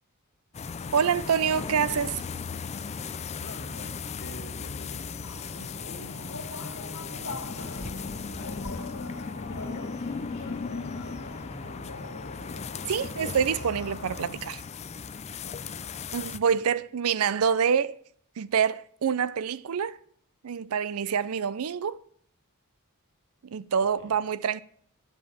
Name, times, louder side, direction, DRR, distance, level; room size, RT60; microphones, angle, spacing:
sound 1, 0.5-16.4, left 5 dB, 30° left, 0.4 m, -37 dB
voice 1, 0.9-2.2 12.9-14.6 16.1-18.0 18.4-20.0 20.4-22.0 23.5-24.6, right 7 dB, 70° right, 0.5 m, -26 dB
voice 2, 3.4-5.1 5.5-8.9 9.5-12.0 15.4-15.9 24.0-24.1, left 1 dB, 50° left, 2.3 m, -47 dB
sound 2, 5.2-14.3, left 2 dB, 70° left, 2.4 m, -42 dB
9.0 x 5.7 x 7.2 m
head